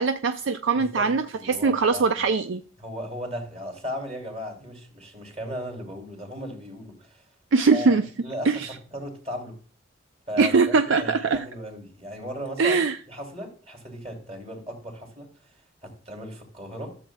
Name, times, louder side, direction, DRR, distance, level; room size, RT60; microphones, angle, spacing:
voice 1, 0.0-2.6 7.5-8.0 8.5-8.7 10.4-11.4 12.6-13.0, right 4 dB, 75° right, 0.5 m, -21 dB
voice 2, 0.8-1.1 1.3-2.2 2.8-7.2 7.7-9.6 10.3-12.8 13.1-15.3 15.8-17.0, equal, 35° right, 2.8 m, -36 dB
13.5 x 7.2 x 2.2 m
head